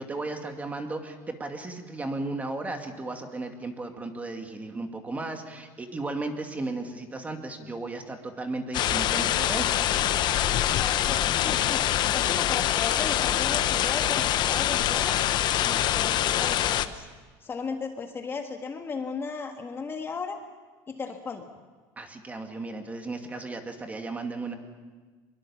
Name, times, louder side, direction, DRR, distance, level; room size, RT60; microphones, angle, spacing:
voice 1, 0.0-9.7 22.0-24.6, right 2 dB, 15° right, 5 dB, 2.4 m, -35 dB
sound 1, 8.7-16.9, left 12 dB, 45° left, 1.0 m, -25 dB
voice 2, 10.8-11.8 12.1-15.2 15.6-17.1 17.4-20.4 20.9-21.5, left 5 dB, 25° left, 4 dB, 1.6 m, -36 dB
23.5 x 22.5 x 7.2 m, 1.4 s
cardioid pair, 135°, 10 cm